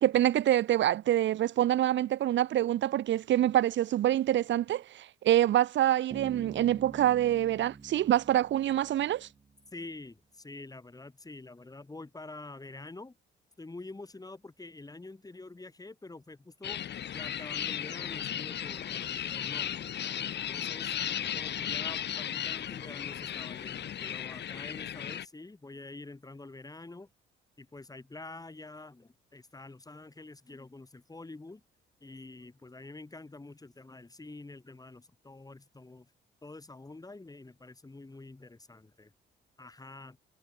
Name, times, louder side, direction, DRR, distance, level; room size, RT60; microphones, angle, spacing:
voice 1, 0.0-9.3, right 12 dB, 70° right, 0.9 m, -26 dB
Bass guitar, 6.1-9.6, right 4 dB, 30° right, 7.6 m, -46 dB
voice 2, 9.7-13.2 13.6-16.8 17.1-19.9 20.3-20.9 21.3-27.1 27.6-31.6 32.0-36.1 36.4-39.1 39.6-40.2, left 2 dB, 20° left, 7.0 m, -47 dB
sound 1, 16.6-25.3, left 10 dB, 60° left, 1.8 m, -35 dB
cardioid pair, 90°, 20 cm